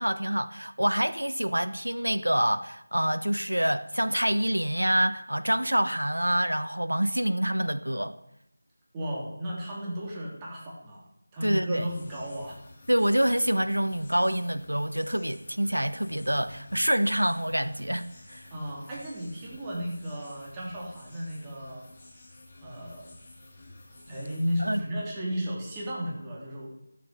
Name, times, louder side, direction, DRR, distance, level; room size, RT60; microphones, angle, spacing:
voice 1, 0.0-8.2 11.4-11.9 12.9-18.4 24.6-24.8, equal, 90° right, 1.1 m, -26 dB
voice 2, 8.9-11.0 11.3-12.6 18.5-21.8 22.6-23.0 24.1-26.8, equal, 15° right, 3.3 m, -34 dB
sound 1, 11.7-24.8, left 2 dB, 25° left, 4.8 m, -52 dB
13.0 x 9.5 x 9.5 m
figure-of-eight pair, 165°, 0 cm